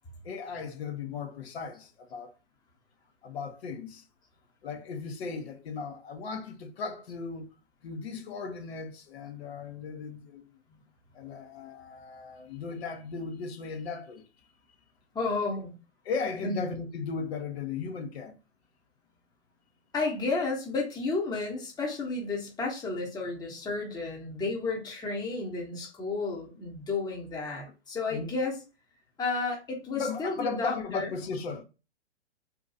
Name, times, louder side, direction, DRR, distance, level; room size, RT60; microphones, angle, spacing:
voice 1, 0.2-2.4 3.2-4.0 4.6-7.5 7.8-10.4 11.1-14.2 16.0-18.4 27.6-27.7 28.1-28.4 30.0-31.6, left 5 dB, 60° left, 0.8 m, -36 dB
voice 2, 15.1-15.7 16.4-16.6 19.9-28.6 29.2-31.1, left 3 dB, 10° left, 1.0 m, -32 dB
2.6 x 2.3 x 3.9 m
hypercardioid pair, 120°, 35 cm